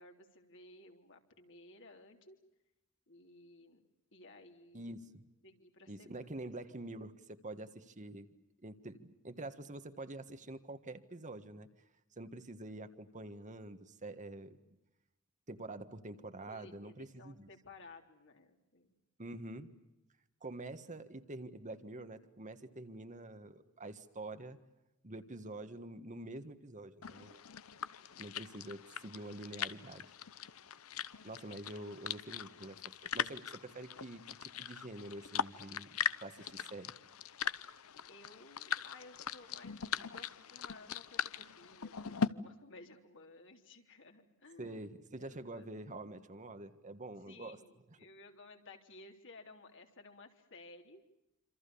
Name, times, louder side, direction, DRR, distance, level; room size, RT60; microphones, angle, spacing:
voice 1, 0.0-2.4 3.1-3.8 4.1-5.0 5.4-6.3 16.5-18.9 38.1-44.9 45.2-45.7 47.3-51.1, left 2 dB, 60° left, 4 dB, 3.6 m, -56 dB
voice 2, 4.7-5.3 5.9-11.7 12.2-14.6 15.5-17.5 19.2-19.8 20.4-24.6 25.0-27.4 28.2-30.1 31.2-36.9 44.6-47.6, right 2 dB, 35° right, 9 dB, 1.6 m, -47 dB
sound 1, 27.0-42.3, left 7 dB, 80° left, 0.8 m, -41 dB
27.0 x 26.5 x 7.0 m, 0.94 s
head